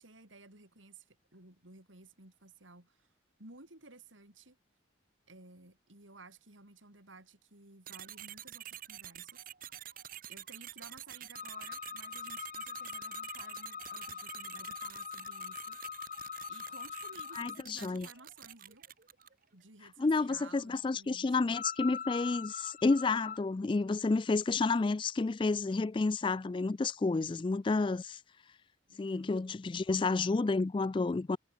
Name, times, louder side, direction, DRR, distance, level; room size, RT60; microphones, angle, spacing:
voice 1, 0.0-3.1 3.4-4.6 5.3-9.4 10.3-16.2 16.5-18.9 19.5-21.3 28.9-29.3, right 3 dB, 90° right, 5.5 m, -55 dB
sound 1, 7.9-19.4, right 11 dB, 45° right, 1.7 m, -48 dB
sound 2, 11.3-17.6 21.5-23.4, left 7 dB, 40° left, 0.8 m, -42 dB
voice 2, 17.4-18.1 20.0-28.2 29.0-31.4, left 3 dB, 25° left, 0.3 m, -30 dB
head